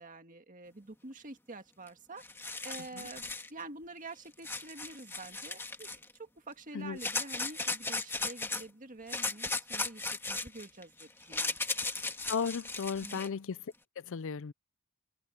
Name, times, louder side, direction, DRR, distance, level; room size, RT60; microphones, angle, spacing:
voice 1, 0.0-2.2 2.6-5.9 6.2-11.6 13.0-13.2, right 2 dB, 35° right, 1.9 m, -47 dB
sound 1, 1.9-2.0 2.2-3.5 4.4-6.1 7.0-8.6 9.1-13.3, left 3 dB, 10° left, 1.9 m, -36 dB
voice 2, 12.3-13.6 14.0-14.5, left 6 dB, 60° left, 0.5 m, -35 dB
head